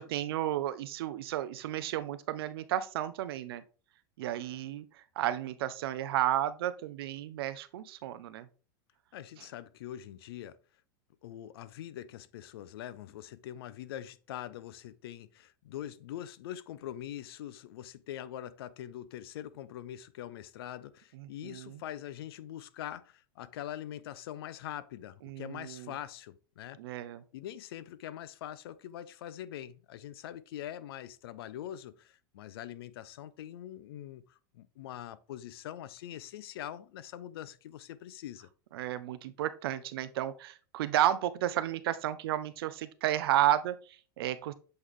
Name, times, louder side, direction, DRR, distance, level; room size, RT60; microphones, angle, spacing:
voice 1, 0.0-3.6 4.2-4.9 5.2-8.5 21.2-21.8 25.2-25.9 26.8-27.2 38.7-44.5, right 12 dB, 85° right, 0.5 m, -32 dB
voice 2, 9.1-10.6 11.2-26.8 27.3-38.5, left 11 dB, 85° left, 0.6 m, -43 dB
8.0 x 3.3 x 3.6 m
supercardioid pair, 145°, 12 cm